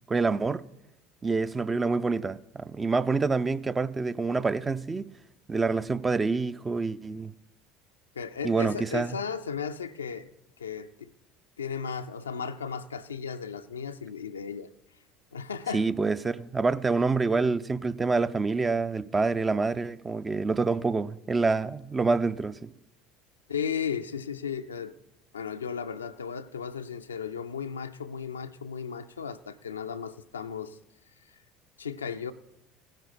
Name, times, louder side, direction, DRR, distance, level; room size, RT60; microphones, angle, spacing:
voice 1, 0.1-0.6 1.2-5.1 5.5-7.3 8.4-9.2 15.7-22.7, right 4 dB, 20° right, 0.5 m, -27 dB
voice 2, 8.2-10.3 10.6-11.1 11.6-14.7 15.3-15.9 23.5-24.9 25.3-30.8 31.8-32.3, left 6 dB, 80° left, 0.5 m, -35 dB
16.5 x 10.5 x 4.2 m
figure-of-eight pair, 65°, 0 cm